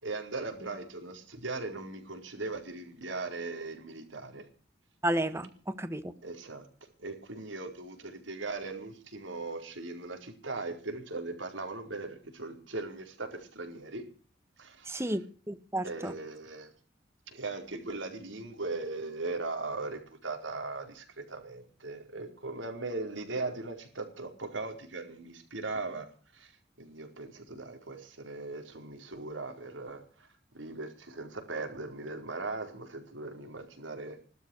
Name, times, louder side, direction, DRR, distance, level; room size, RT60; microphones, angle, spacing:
voice 1, 0.0-4.5 6.2-6.7 7.0-14.0 14.6-15.1 15.8-16.7 17.3-26.5 26.8-30.3 30.5-34.2, right 3 dB, 85° right, 4 dB, 4.6 m, -39 dB
voice 2, 5.0-6.1 14.9-16.1, right 1 dB, 15° right, 11 dB, 1.5 m, -32 dB
17.5 x 13.0 x 6.4 m, 0.40 s
head